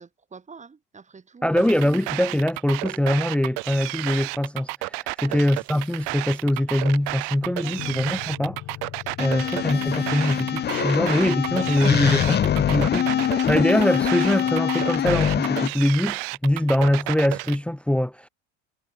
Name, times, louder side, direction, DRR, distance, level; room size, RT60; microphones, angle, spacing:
voice 1, 0.0-1.7 5.2-5.4 7.6-8.0 9.0-9.6, right 5 dB, 20° right, 5.2 m, -46 dB
voice 2, 1.4-8.6 9.2-18.3, left 1 dB, 5° left, 1.0 m, -23 dB
sound 1, 1.6-17.6, right 40 dB or more, 75° right, 1.3 m, -32 dB
sound 2, 7.4-13.3, left 15 dB, 50° left, 7.6 m, -37 dB
sound 3, 9.2-15.7, left 9 dB, 30° left, 1.0 m, -24 dB
supercardioid pair, 125°, 36 cm